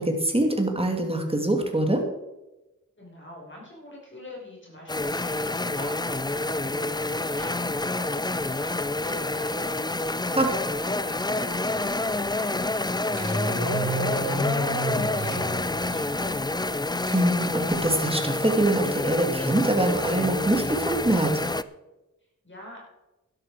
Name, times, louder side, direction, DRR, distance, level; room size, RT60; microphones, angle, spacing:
voice 1, 0.0-2.0 10.3-10.5 17.1-21.4, right 1 dB, 20° right, 3 dB, 2.5 m, -24 dB
voice 2, 3.0-16.9 22.4-22.8, left 1 dB, 35° left, -4 dB, 5.2 m, -44 dB
sound 1, 4.9-21.6, left 2 dB, 15° left, 0.5 m, -28 dB
sound 2, 13.1-16.4, equal, 55° left, 5.1 m, -30 dB
sound 3, 13.1-13.4 14.6-15.4 16.8-17.3 17.6-17.9, right 2 dB, 70° right, 4.6 m, -45 dB
12.5 x 12.0 x 4.9 m, 1.0 s
wide cardioid pair, 65°, 32 cm